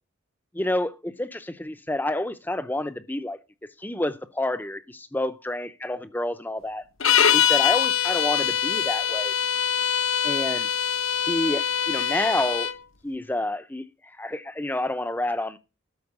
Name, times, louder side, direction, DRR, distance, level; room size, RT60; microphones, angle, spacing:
voice 1, 0.5-3.4 3.8-6.8 7.3-9.3 10.2-10.7 11.3-12.7 13.0-15.6, left 1 dB, 10° left, 0.5 m, -29 dB
sound 1, 7.0-12.8, left 9 dB, 70° left, 0.8 m, -23 dB
12.5 x 4.6 x 7.2 m
head